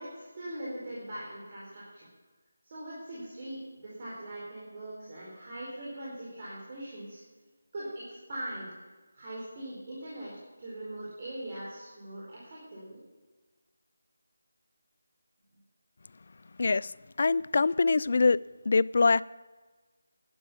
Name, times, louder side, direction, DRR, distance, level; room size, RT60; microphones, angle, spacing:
voice 1, 0.0-2.1 2.6-7.2 7.7-8.7 9.1-13.0, right 1 dB, 40° right, -6 dB, 4.2 m, -41 dB
voice 2, 16.6-18.4 18.7-19.2, left 4 dB, 55° left, 20 dB, 0.3 m, -24 dB
11.5 x 10.5 x 7.3 m, 1.3 s
figure-of-eight pair, 165°, 0 cm